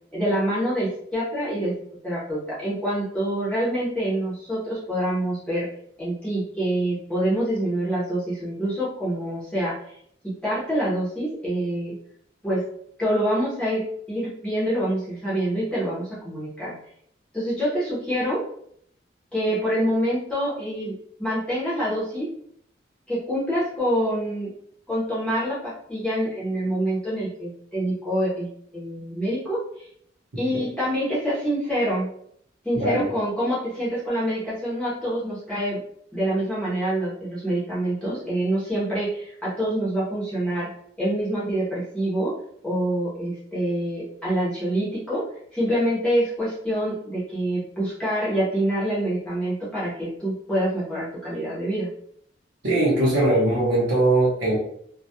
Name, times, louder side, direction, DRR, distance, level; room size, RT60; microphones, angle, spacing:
voice 1, 0.1-1.7 2.0-5.7 6.0-9.9 10.2-12.0 12.4-12.7 13.0-16.7 17.3-18.4 19.3-20.9 21.2-22.3 23.1-24.5 24.9-29.9 30.4-32.1 32.6-35.8 36.1-40.7 41.0-42.3 42.6-45.2 45.5-51.9, right 1 dB, 5° left, -9 dB, 0.7 m, -26 dB
voice 2, 32.7-33.1 52.6-54.6, right 2 dB, 80° right, -8 dB, 0.8 m, -20 dB
2.2 x 2.1 x 2.7 m, 0.67 s
head